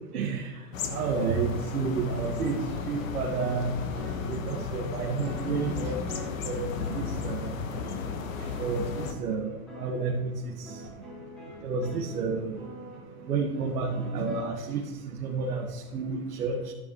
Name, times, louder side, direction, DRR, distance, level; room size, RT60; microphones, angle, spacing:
voice 1, 0.1-0.5 0.9-3.7 4.3-6.0 6.4-7.5 8.6-9.5 9.8-10.3 11.6-12.6 13.3-16.7, right 4 dB, 85° right, -2 dB, 1.8 m, -30 dB
sound 1, 0.7-9.1, left 5 dB, 60° left, 1.5 m, -34 dB
sound 2, 2.5-14.5, equal, ahead, 0.4 m, -45 dB
13.5 x 11.0 x 3.2 m, 1.2 s
hypercardioid pair, 160°, 44 cm